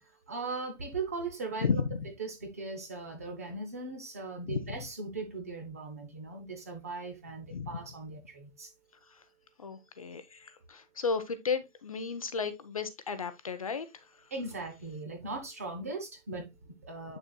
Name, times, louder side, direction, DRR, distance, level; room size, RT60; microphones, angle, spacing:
voice 1, 0.3-1.8 2.2-8.7 14.3-17.2, right 3 dB, 10° right, 0.6 m, -39 dB
voice 2, 1.6-2.1 4.5-4.8 7.5-7.7 9.1-9.2 9.6-13.9, left 5 dB, 30° left, 0.6 m, -33 dB
8.8 x 6.5 x 2.2 m
hypercardioid pair, 170°, 38 cm